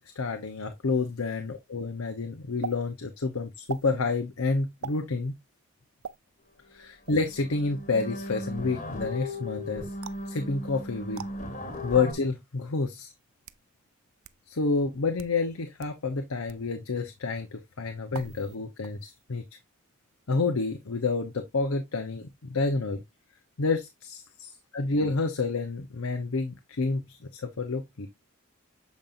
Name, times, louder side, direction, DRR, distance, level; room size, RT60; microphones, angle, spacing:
voice 1, 0.2-1.4 1.7-5.4 6.7-9.9 10.3-11.2 11.8-13.1 14.5-19.4 20.3-23.0 23.6-24.2 24.7-28.1, left 3 dB, 85° left, 0.8 m, -29 dB
sound 1, 2.6-2.8 3.7-3.9 4.8-5.0 6.0-6.2 7.0-7.3 10.0-10.3 11.1-11.3 12.2-12.3 13.2-13.6 14.2-14.3 15.0-15.4 15.8-15.9 16.5-16.7 18.1-18.6 18.8-19.2, right 7 dB, 80° right, 0.5 m, -40 dB
sound 2, 6.7-6.8 7.1-12.1, left 1 dB, 35° left, 1.3 m, -37 dB
7.2 x 5.2 x 2.5 m
head